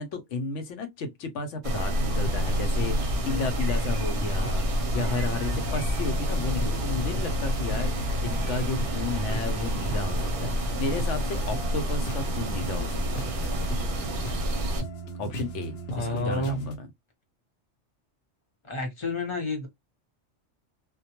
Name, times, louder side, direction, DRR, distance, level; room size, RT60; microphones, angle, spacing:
voice 1, 0.0-4.7 4.9-7.9 8.2-13.3 15.2-16.9, left 3 dB, 85° left, 0.9 m, -33 dB
sound 1, 1.6-14.8, equal, 55° right, 0.7 m, -28 dB
sound 2, 1.9-16.8, equal, 65° left, 0.8 m, -37 dB
voice 2, 15.9-16.7 18.6-19.7, left 2 dB, 30° left, 0.7 m, -30 dB
2.2 x 2.1 x 2.8 m
omnidirectional pair, 1.2 m